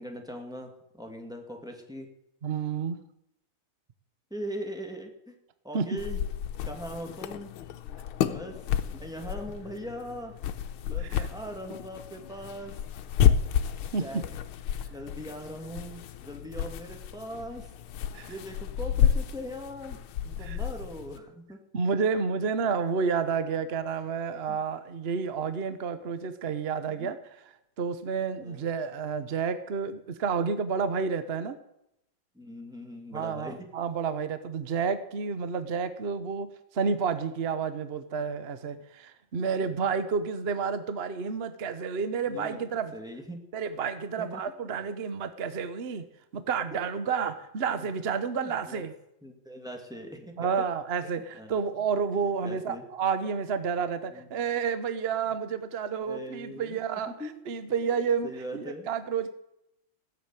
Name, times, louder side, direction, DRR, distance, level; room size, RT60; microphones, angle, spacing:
voice 1, 0.0-2.1 4.3-5.3 5.6-6.2 6.6-7.6 8.3-8.6 8.9-10.3 10.8-12.8 14.0-14.2 14.9-17.7 18.3-21.6 28.4-28.6 32.3-33.7 42.3-42.6 42.9-43.4 44.2-44.4 46.7-46.8 47.7-47.9 48.4-48.8 49.2-50.5 51.2-51.5 52.2-52.9 54.1-54.3 56.0-56.8 57.1-57.4 57.7-57.8 58.2-58.9, equal, ahead, 2 dB, 2.0 m, -40 dB
voice 2, 2.4-3.0 5.7-5.9 11.1-11.3 13.3-13.4 13.9-14.2 18.1-18.3 20.4-20.6 21.7-27.2 27.8-31.6 33.1-36.5 36.7-43.0 43.5-46.0 46.3-48.9 50.4-57.1 57.5-59.3, right 6 dB, 50° right, 11 dB, 0.7 m, -30 dB
sound 1, 6.0-21.2, left 9 dB, 80° left, 1.6 m, -31 dB
16.0 x 7.6 x 9.0 m, 0.83 s
omnidirectional pair, 2.3 m